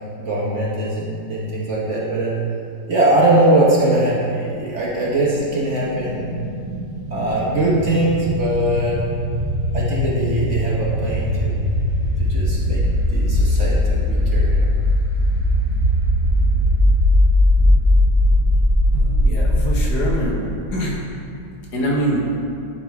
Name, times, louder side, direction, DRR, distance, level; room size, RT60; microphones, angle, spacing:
voice 1, 0.2-2.3 2.9-6.3 7.1-9.0 9.7-11.6 12.2-14.7, right 1 dB, 45° right, -5 dB, 1.2 m, -21 dB
sound 1, 4.4-20.2, left 1 dB, 20° right, 0.7 m, -19 dB
voice 2, 18.9-20.4 20.7-21.0 21.7-22.2, equal, 65° left, -3 dB, 1.7 m, -22 dB
11.0 x 3.7 x 4.7 m, 2.5 s
omnidirectional pair, 1.9 m